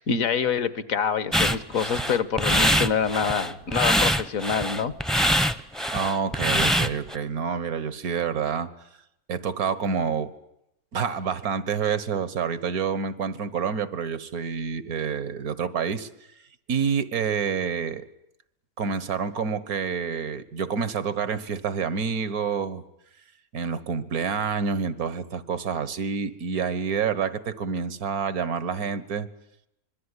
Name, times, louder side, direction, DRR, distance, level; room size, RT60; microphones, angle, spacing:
voice 1, 0.0-4.9, left 6 dB, 70° left, 14 dB, 1.7 m, -26 dB
sound 1, 1.3-7.1, equal, ahead, 0.6 m, -23 dB
voice 2, 5.9-8.7 9.3-10.3 10.9-16.1 16.7-18.0 18.8-22.8 23.5-29.3, right 6 dB, 85° right, 15 dB, 1.8 m, -28 dB
25.5 x 22.0 x 9.8 m, 0.81 s
omnidirectional pair, 1.5 m